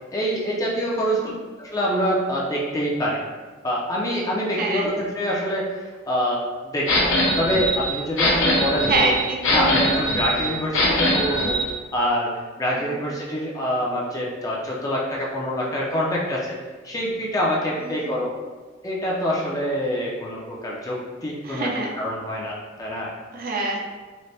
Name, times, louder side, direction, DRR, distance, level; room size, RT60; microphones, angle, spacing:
voice 1, 0.1-1.3 1.6-3.2 3.6-9.1 9.5-11.6 11.9-16.6 16.8-18.3 18.8-21.7 22.0-23.1, equal, 20° left, -4 dB, 0.4 m, -25 dB
voice 2, 4.6-4.9 8.9-9.7 10.3-10.5 12.7-12.9 17.9-18.1 21.4-21.9 23.3-23.8, right 2 dB, 50° right, -1 dB, 0.5 m, -26 dB
sound 1, 6.9-11.7, left 1 dB, 80° left, 0.7 m, -22 dB
4.0 x 2.1 x 3.2 m, 1.4 s
head